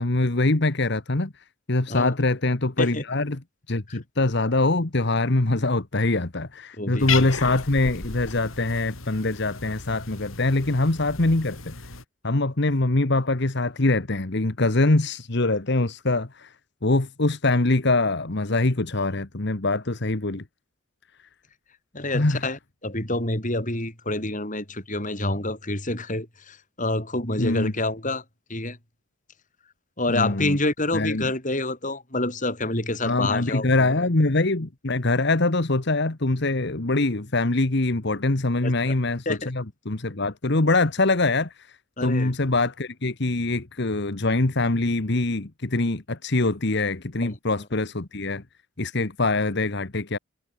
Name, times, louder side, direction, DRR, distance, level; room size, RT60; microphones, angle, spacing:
voice 1, 0.0-3.4 3.7-11.7 12.2-16.5 16.8-20.4 22.1-22.4 27.4-27.7 30.1-30.6 30.9-31.3 33.0-48.4 48.8-50.2, left 2 dB, 55° left, 1.4 m, -23 dB
voice 2, 6.8-7.2 21.9-28.2 28.5-28.8 30.0-33.7 38.6-38.9 39.3-39.5 42.0-42.3 47.2-47.4, left 2 dB, 40° left, 7.5 m, -27 dB
Cat, 7.0-12.0, left 6 dB, 85° left, 4.0 m, -34 dB
head